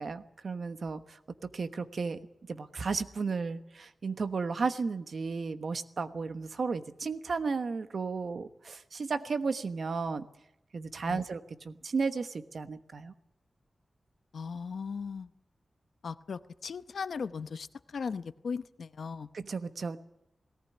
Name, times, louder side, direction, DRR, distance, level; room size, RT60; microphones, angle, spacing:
voice 1, 0.0-2.2 2.5-10.3 10.7-13.1 19.3-20.0, right 4 dB, 60° right, 10 dB, 1.2 m, -34 dB
voice 2, 14.3-15.3 16.0-17.7 17.9-19.3, left 5 dB, 75° left, 13 dB, 0.8 m, -37 dB
18.5 x 18.0 x 9.6 m, 0.82 s
wide cardioid pair, 120°, 0 cm